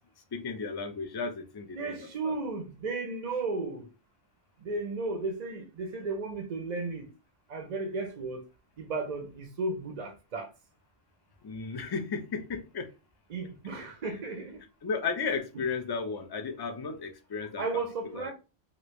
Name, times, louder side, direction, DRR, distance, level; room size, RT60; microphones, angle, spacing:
voice 1, 0.3-2.3 11.4-12.9 14.8-17.8 18.1-18.3, left 5 dB, 40° left, 0.3 m, -34 dB
voice 2, 1.7-3.9 4.6-7.1 7.5-8.4 8.8-10.5 13.3-14.6 15.5-15.6 17.6-18.3, right 3 dB, 50° right, 0.5 m, -34 dB
3.2 x 2.5 x 3.1 m
omnidirectional pair, 1.2 m